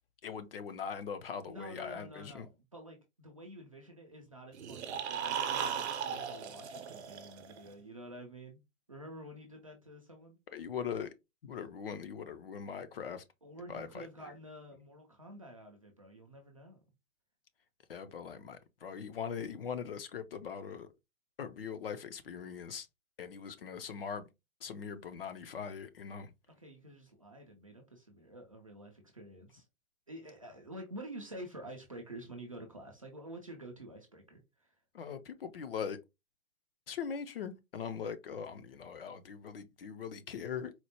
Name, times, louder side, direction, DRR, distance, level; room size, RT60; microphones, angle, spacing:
voice 1, 0.2-2.5 10.5-11.1 11.4-13.2 13.7-14.3 17.9-20.9 21.4-22.9 23.2-24.3 24.6-26.3 34.9-36.0 36.9-40.7, left 7 dB, 45° left, 0.4 m, -41 dB
voice 2, 1.4-8.6 8.9-10.4 13.4-16.8 26.5-29.7 30.1-34.8, right 1 dB, 25° right, 0.3 m, -49 dB
sound 1, 4.5-7.7, right 7 dB, 50° right, 0.7 m, -37 dB
4.2 x 2.0 x 2.8 m
hypercardioid pair, 145°, 42 cm